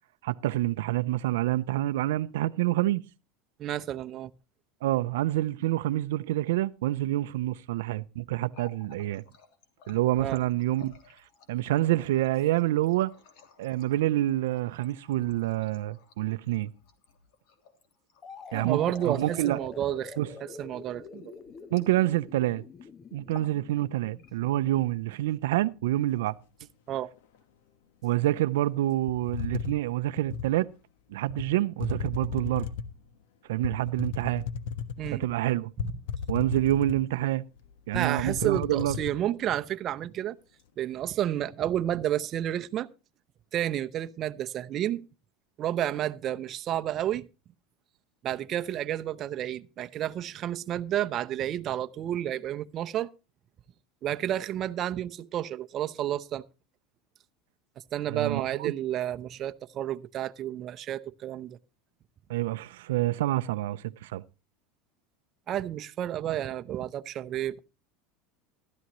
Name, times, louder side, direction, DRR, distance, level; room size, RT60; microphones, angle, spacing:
voice 1, 0.2-3.0 4.8-9.2 9.9-11.0 11.5-13.1 13.6-16.7 18.5-19.6 20.2-20.3 21.7-22.6 23.1-26.3 28.0-30.7 31.1-32.7 33.5-34.4 35.1-35.7 36.3-37.4 37.9-39.0 58.1-58.7 62.3-64.2, right 15 dB, 90° right, 0.5 m, -27 dB
voice 2, 3.6-4.3 10.2-10.4 18.5-20.2 20.6-21.3 26.9-27.1 35.0-35.2 37.9-40.4 40.8-42.9 43.5-45.0 45.6-47.3 48.2-53.1 54.0-56.4 57.9-61.6 65.5-67.6, right 11 dB, 35° right, 0.7 m, -31 dB
Water tap faucet, 8.3-22.4 22.6-22.9 23.2-23.6 24.0-24.6 25.3-26.0, left 5 dB, 65° left, 3.1 m, -55 dB
sound 1, 18.2-25.9, left 5 dB, 25° left, 0.7 m, -47 dB
sound 2, 29.1-30.5 31.3-31.5 31.8-33.0 33.6-35.3 35.8-37.2 37.6-37.7 37.9-39.1, left 7 dB, 80° left, 1.3 m, -35 dB
15.5 x 12.5 x 3.0 m
supercardioid pair, 140°, 0 cm